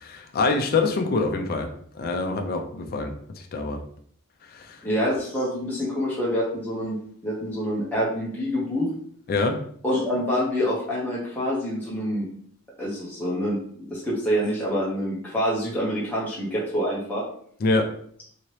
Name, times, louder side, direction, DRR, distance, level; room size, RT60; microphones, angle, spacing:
voice 1, 0.0-1.7 2.0-3.1 3.5-3.8 4.5-4.8 9.3-9.5 17.6-17.9, left 3 dB, 45° left, 4 dB, 0.4 m, -24 dB
voice 2, 4.8-7.0 7.2-8.9 9.8-12.3 12.8-13.6 13.9-17.2, equal, 10° left, -7 dB, 0.7 m, -26 dB
2.9 x 2.8 x 3.0 m, 0.63 s
head